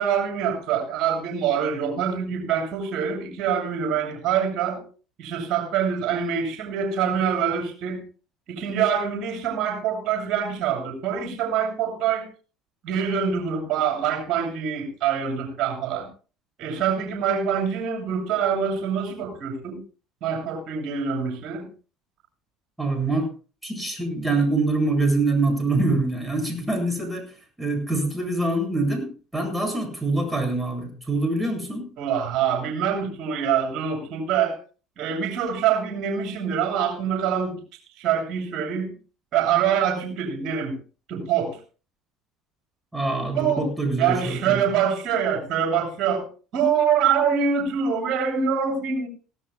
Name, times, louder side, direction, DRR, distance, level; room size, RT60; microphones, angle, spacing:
voice 1, 0.0-4.8 5.2-8.0 8.5-12.3 12.8-16.1 16.6-19.8 20.2-21.7 32.0-34.6 35.0-37.6 38.0-38.9 39.3-40.8 41.1-41.6 43.3-43.7 44.0-46.3 46.5-49.1, right 7 dB, 55° right, 1 dB, 7.7 m, -25 dB
voice 2, 22.8-23.3 23.6-27.3 27.6-31.9 42.9-44.6, right 2 dB, 10° right, 4 dB, 7.7 m, -25 dB
19.0 x 18.0 x 2.3 m, 0.37 s
figure-of-eight pair, 60°, 0 cm